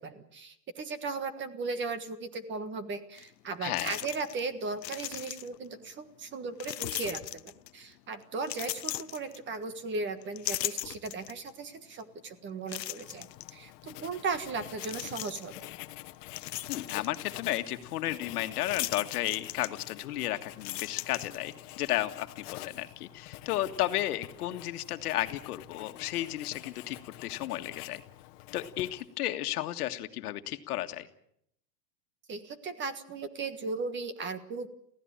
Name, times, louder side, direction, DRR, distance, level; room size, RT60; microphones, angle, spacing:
voice 1, 0.0-15.7 32.3-34.7, right 4 dB, 20° right, 12 dB, 1.6 m, -37 dB
sound 1, 3.2-3.3 3.7-4.5 4.7-5.7 6.6-7.8 8.4-9.8 10.2-11.5 12.0-12.1 12.7-13.5 14.8-15.6 16.1-17.2 18.6-20.1 20.5-21.7, left 15 dB, 80° left, 0.9 m, -38 dB
voice 2, 3.6-4.0 16.7-27.0 27.2-28.0 28.5-31.1, left 14 dB, 65° left, 8 dB, 1.8 m, -33 dB
Writing, 13.0-29.2, left 17 dB, 45° left, 1.3 m, -47 dB
24.0 x 16.0 x 8.9 m, 0.73 s
hypercardioid pair, 135°, 49 cm